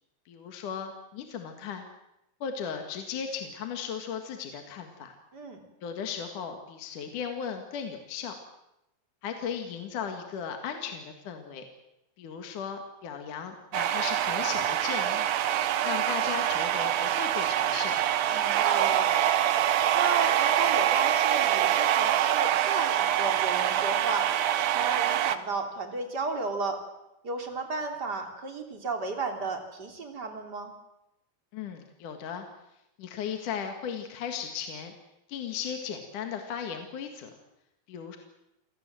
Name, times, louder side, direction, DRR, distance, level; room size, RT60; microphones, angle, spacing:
voice 1, 0.3-1.9 2.4-5.2 5.8-8.3 9.2-11.7 12.2-15.3 15.8-18.0 31.5-32.4 33.0-34.9 35.3-37.3 37.9-38.2, left 7 dB, 60° left, 5 dB, 3.1 m, -36 dB
sound 1, 13.7-25.4, right 11 dB, 85° right, 1.5 m, -25 dB
voice 2, 18.3-19.1 19.9-24.3 24.7-26.8 27.2-30.7, right 3 dB, 30° right, 4 dB, 3.1 m, -33 dB
28.0 x 18.0 x 7.7 m, 0.87 s
omnidirectional pair, 4.5 m